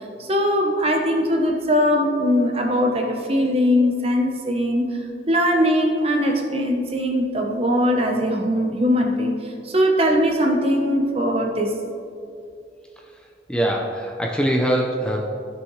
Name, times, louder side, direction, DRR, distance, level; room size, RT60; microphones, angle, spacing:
voice 1, 0.2-4.9 5.3-9.4 9.6-11.7, equal, 35° right, 1 dB, 1.0 m, -20 dB
voice 2, 13.5-15.2, right 1 dB, 5° left, -1 dB, 0.6 m, -22 dB
13.5 x 6.3 x 3.2 m, 2.4 s
head